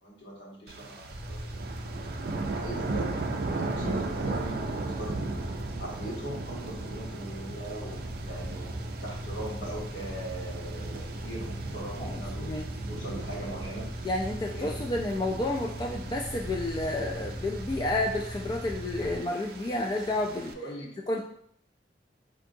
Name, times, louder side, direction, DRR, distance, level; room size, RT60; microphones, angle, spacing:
voice 1, 0.0-1.6 2.4-5.5 5.8-12.5 12.9-13.9 14.5-14.7 20.5-20.9, right 1 dB, 75° left, -4 dB, 1.2 m, -40 dB
sound 1, 0.7-20.5, right 3 dB, 60° right, 0.4 m, -38 dB
sound 2, 1.1-19.2, equal, 30° right, 0.9 m, -39 dB
voice 2, 12.0-12.7 14.0-20.5 21.1-21.2, left 2 dB, 25° left, 0 dB, 0.3 m, -30 dB
4.5 x 2.7 x 2.6 m, 0.66 s
head